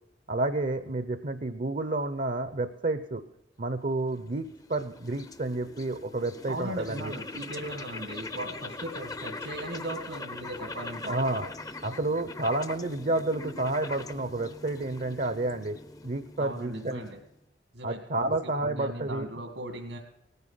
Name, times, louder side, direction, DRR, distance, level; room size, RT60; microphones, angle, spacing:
voice 1, 0.3-3.2 3.6-7.2 11.0-11.5 11.8-15.8 16.0-17.0 17.8-19.3, right 2 dB, 45° right, 11 dB, 0.7 m, -30 dB
sound 1, 3.9-17.3, left 3 dB, 20° left, 0.7 m, -42 dB
voice 2, 6.5-11.2 16.4-17.2 17.7-18.3 18.6-20.0, right 1 dB, 85° right, 3 dB, 2.0 m, -38 dB
18.5 x 9.6 x 5.7 m, 0.83 s
head